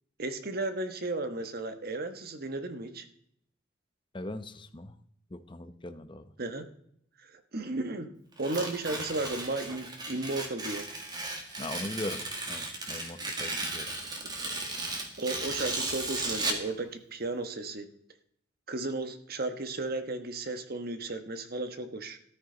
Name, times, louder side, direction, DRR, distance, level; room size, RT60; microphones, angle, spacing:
voice 1, 0.2-3.1 6.4-6.7 7.5-8.1 8.4-10.9 15.2-17.9 18.7-22.2, right 2 dB, 50° right, 8 dB, 1.2 m, -34 dB
voice 2, 4.1-4.9 5.3-6.3 11.6-12.2 12.5-13.9, left 1 dB, 25° left, 9 dB, 0.8 m, -40 dB
Tearing, 8.4-16.7, right 2 dB, 20° right, 1.9 m, -35 dB
13.5 x 13.0 x 3.9 m, 0.68 s
head